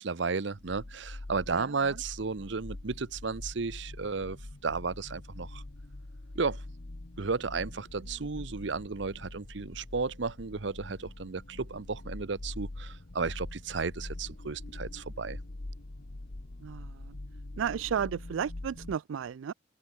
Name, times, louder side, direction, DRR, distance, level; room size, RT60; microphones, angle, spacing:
voice 1, 0.0-5.6 6.4-6.6 7.2-15.4, right 4 dB, 65° right, 0.7 m, -33 dB
sound 1, 0.5-19.0, left 2 dB, 60° left, 1.2 m, -44 dB
voice 2, 1.5-2.0 16.6-17.2 17.6-19.5, right 7 dB, 85° right, 0.4 m, -34 dB
head